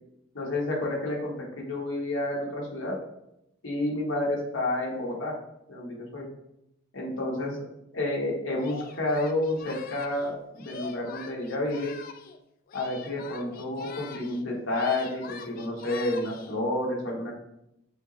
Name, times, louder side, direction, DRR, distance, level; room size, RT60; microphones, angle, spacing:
voice 1, 0.3-2.9 3.6-5.4 5.7-6.3 6.9-7.5 7.9-11.9 12.7-17.3, left 1 dB, 75° left, -3 dB, 1.2 m, -30 dB
Singing, 8.6-12.4 12.7-14.4 14.7-16.6, left 5 dB, 45° left, 0.3 m, -44 dB
5.7 x 2.0 x 3.9 m, 0.84 s
head